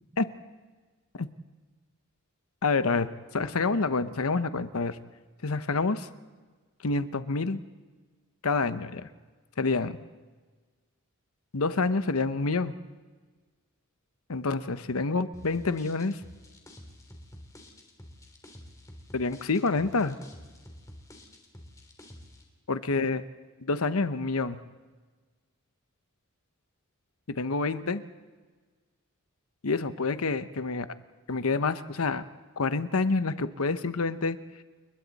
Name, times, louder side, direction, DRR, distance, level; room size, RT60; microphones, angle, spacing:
voice 1, 2.6-5.0 5.4-6.1 6.8-7.6 8.4-9.1 9.6-10.0 11.5-12.8 14.3-16.2 19.1-20.2 22.7-23.2 23.6-24.6 27.3-28.0 29.6-30.9 31.3-32.2 32.6-34.4, left 3 dB, 85° left, 12 dB, 0.9 m, -27 dB
sound 1, 15.3-22.4, left 1 dB, 15° left, 3.3 m, -49 dB
29.5 x 22.0 x 4.2 m, 1.4 s
head